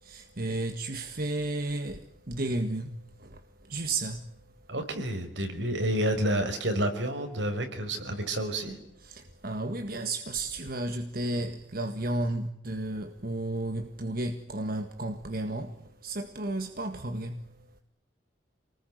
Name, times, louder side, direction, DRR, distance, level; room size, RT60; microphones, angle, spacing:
voice 1, 0.0-4.3 9.0-17.5, right 2 dB, 50° right, 1.9 m, -33 dB
voice 2, 4.7-8.8, right 1 dB, 75° right, 5.5 m, -29 dB
28.5 x 20.0 x 9.5 m
head